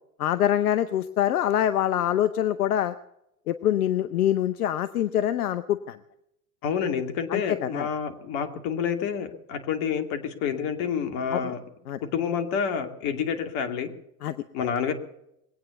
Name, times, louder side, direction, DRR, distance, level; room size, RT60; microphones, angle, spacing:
voice 1, 0.2-2.9 3.5-6.0 7.3-7.9 11.3-11.5 11.9-12.0 14.2-14.3, left 11 dB, 85° left, 13 dB, 0.8 m, -25 dB
voice 2, 6.6-11.6 12.0-13.9 14.5-14.9, left 7 dB, 60° left, 7 dB, 2.6 m, -28 dB
21.0 x 9.1 x 7.0 m, 0.82 s
hypercardioid pair, 90°, 44 cm